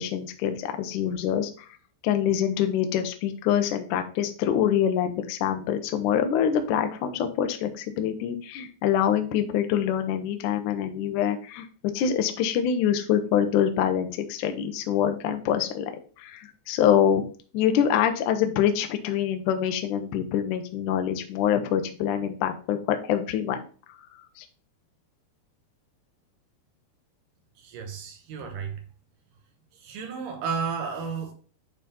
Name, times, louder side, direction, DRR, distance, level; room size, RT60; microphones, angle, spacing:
voice 1, 0.0-1.5 2.0-11.6 11.9-15.9 16.2-17.3 17.5-23.6 24.4-24.5, left 9 dB, 90° left, 1.7 m, -25 dB
voice 2, 27.6-28.8 29.7-31.3, right 6 dB, 65° right, 2.3 m, -33 dB
9.0 x 3.6 x 4.0 m
omnidirectional pair, 4.8 m